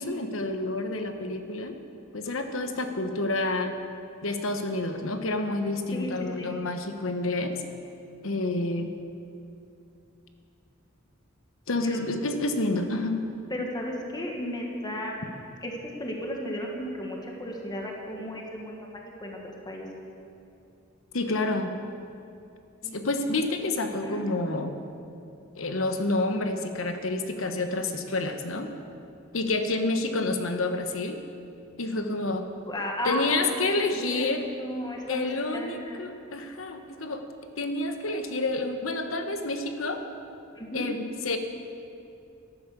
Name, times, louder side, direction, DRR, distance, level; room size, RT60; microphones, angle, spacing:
voice 1, 0.0-1.7 2.1-3.7 4.2-7.5 8.2-8.9 11.7-13.2 21.1-21.7 22.9-24.7 25.6-28.7 29.3-31.2 31.8-32.5 33.0-34.5 35.1-37.3 37.6-40.0 40.7-41.4, left 2 dB, 80° left, 7 dB, 1.1 m, -29 dB
voice 2, 5.9-6.5 11.8-12.0 12.9-13.0 13.5-15.2 15.6-15.7 16.0-19.4 19.6-19.9 22.8-23.0 24.0-24.2 32.7-33.2 33.5-33.7 34.0-34.2 34.6-35.3 35.5-36.0 40.5-40.9, equal, 20° left, 0 dB, 1.5 m, -34 dB
13.0 x 10.5 x 6.7 m, 2.6 s
head